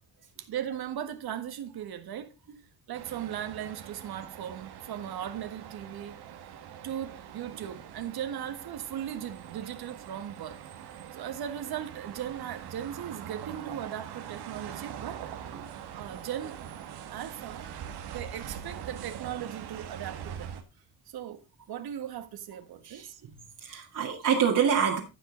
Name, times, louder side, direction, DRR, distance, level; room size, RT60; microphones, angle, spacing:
voice 1, 0.4-2.3 2.9-6.2 6.8-10.6 11.1-15.3 15.9-16.6 17.1-17.7 18.1-20.5 21.1-23.2, right 10 dB, 70° right, 1.7 m, -38 dB
sound 1, 2.9-20.6, right 9 dB, 85° right, 1.8 m, -43 dB
voice 2, 22.8-25.0, right 7 dB, 55° right, 2.2 m, -27 dB
14.5 x 5.6 x 3.9 m
cardioid pair, 125°, 38 cm